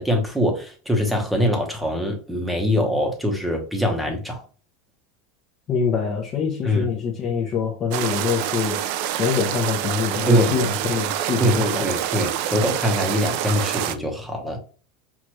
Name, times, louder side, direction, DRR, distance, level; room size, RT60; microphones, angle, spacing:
voice 1, 0.0-4.4 6.6-6.9 10.2-10.5 11.4-14.6, equal, 5° right, 1.0 m, -23 dB
voice 2, 5.7-11.9, left 6 dB, 30° left, 0.9 m, -25 dB
sound 1, 7.9-14.0, right 11 dB, 55° right, 0.4 m, -26 dB
6.0 x 2.5 x 3.1 m
supercardioid pair, 160°, 0 cm